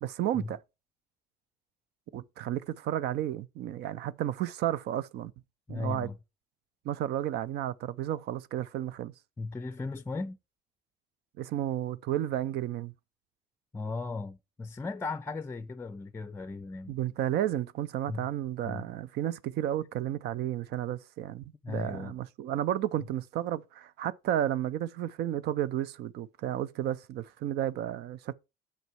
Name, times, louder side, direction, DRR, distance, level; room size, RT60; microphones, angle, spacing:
voice 1, 0.0-0.6 2.1-5.3 5.7-6.1 6.8-9.1 11.4-12.9 16.9-28.3, right 12 dB, 75° right, 0.6 m, -32 dB
voice 2, 5.7-6.2 9.4-10.4 13.7-17.0 18.1-18.3 18.6-18.9 21.6-22.2, left 3 dB, 15° left, 0.4 m, -36 dB
8.1 x 6.5 x 4.5 m
cardioid pair, 110°, 17 cm